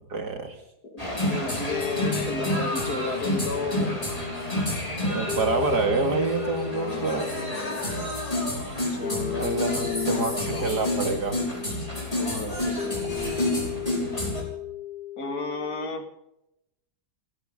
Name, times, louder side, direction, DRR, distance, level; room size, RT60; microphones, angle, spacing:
voice 1, 0.1-0.6 5.1-7.3 8.7-8.8 9.4-11.4, right 3 dB, 75° right, 4 dB, 3.0 m, -27 dB
voice 2, 0.8-3.9 6.7-8.1 8.9-10.7 12.1-13.0 15.2-16.1, left 3 dB, 65° left, 5 dB, 2.7 m, -33 dB
sound 1, 1.0-14.4, left 1 dB, 20° left, 5.3 m, -29 dB
sound 2, 1.7-15.9, left 11 dB, 85° left, 2.1 m, -36 dB
30.0 x 11.5 x 3.9 m, 0.86 s
omnidirectional pair, 1.8 m